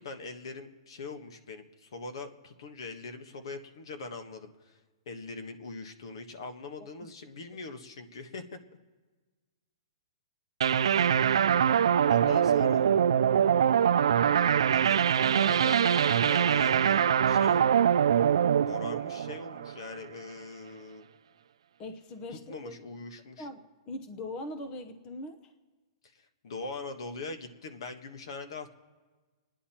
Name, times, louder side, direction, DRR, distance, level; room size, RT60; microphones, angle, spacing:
voice 1, 0.0-4.8 5.0-8.6 11.7-12.8 15.3-17.8 18.5-21.0 22.5-23.5 26.1-28.7, left 3 dB, 70° left, 7 dB, 1.4 m, -42 dB
sound 1, 10.6-20.0, right 8 dB, 90° right, 0.4 m, -24 dB
voice 2, 12.2-12.7 21.8-22.7 23.4-25.5, left 1 dB, 25° left, 9 dB, 0.7 m, -41 dB
27.5 x 9.9 x 4.4 m, 1.3 s
hypercardioid pair, 165°, 3 cm